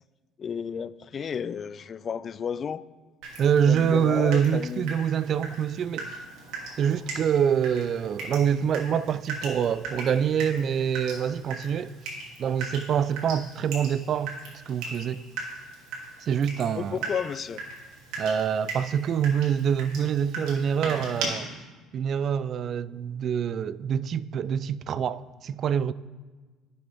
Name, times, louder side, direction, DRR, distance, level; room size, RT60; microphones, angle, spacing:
voice 1, 0.4-2.8 3.7-5.0 16.7-17.6, left 7 dB, 40° left, 0.3 m, -32 dB
Water tap faucet / Drip, 3.2-21.3, right 3 dB, 75° right, 2.7 m, -39 dB
voice 2, 3.4-6.2 6.8-12.0 12.4-14.3 14.7-15.2 16.2-17.0 18.2-21.5 21.9-25.9, right 8 dB, 50° right, 0.3 m, -25 dB
15.0 x 6.9 x 3.4 m
supercardioid pair, 90°, 0 cm